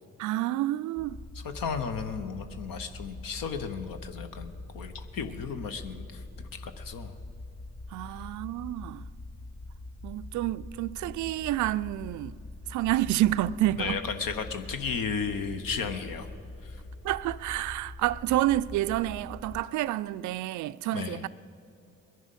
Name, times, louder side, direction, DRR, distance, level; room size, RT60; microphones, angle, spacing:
voice 1, 0.2-1.2 7.9-9.1 10.0-12.3 12.7-14.0 17.0-21.3, right 15 dB, 45° right, 0.4 m, -29 dB
sound 1, 1.0-19.6, left 2 dB, 25° left, 1.1 m, -44 dB
voice 2, 1.3-7.2 8.1-8.3 13.7-16.3 16.6-16.8 20.9-21.2, left 6 dB, 55° left, 0.9 m, -34 dB
21.0 x 11.0 x 5.4 m
figure-of-eight pair, 40°, 42 cm